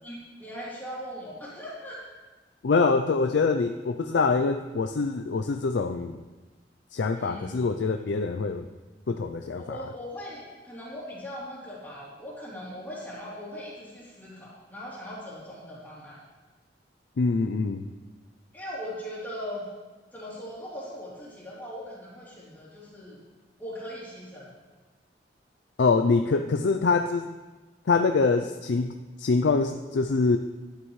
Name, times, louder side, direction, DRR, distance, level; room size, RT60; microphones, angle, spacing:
voice 1, 0.0-2.0 7.1-7.7 9.5-16.2 18.5-19.7 20.1-23.2 23.6-24.5, equal, 10° left, -8 dB, 3.2 m, -39 dB
voice 2, 2.6-6.2 6.9-8.6 9.1-9.8 17.2-17.9 25.8-27.3 27.9-28.9 29.2-30.4, left 4 dB, 70° left, 7 dB, 0.4 m, -24 dB
11.0 x 10.5 x 3.2 m, 1.2 s
head